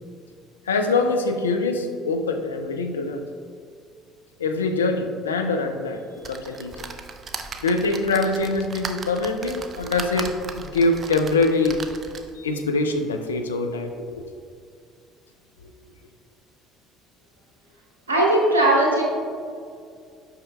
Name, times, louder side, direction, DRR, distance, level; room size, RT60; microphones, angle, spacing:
voice 1, 0.7-3.2 4.4-6.9 7.6-11.8 12.4-14.3, left 3 dB, 85° left, 5 dB, 0.4 m, -24 dB
sound 1, 6.2-12.4 13.0-13.1 13.3-13.4, right 5 dB, 40° right, 0.5 m, -37 dB
voice 2, 18.1-19.0, right 1 dB, 90° right, -2 dB, 0.9 m, -18 dB
8.1 x 5.6 x 2.2 m, 2.3 s
figure-of-eight pair, 60°, 0 cm